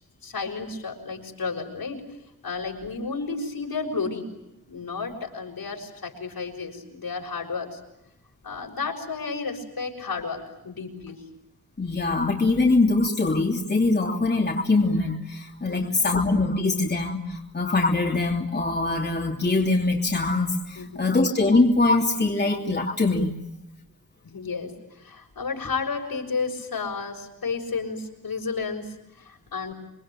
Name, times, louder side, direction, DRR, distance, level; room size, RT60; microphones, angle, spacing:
voice 1, 0.2-2.0 2.4-4.3 4.7-7.8 8.4-11.2 15.7-16.0 20.7-21.1 24.2-29.7, left 4 dB, 75° left, 1 dB, 6.4 m, -32 dB
voice 2, 11.8-23.3, left 3 dB, 30° left, 0 dB, 2.9 m, -23 dB
27.5 x 24.0 x 9.0 m, 0.88 s
wide cardioid pair, 105°, 36 cm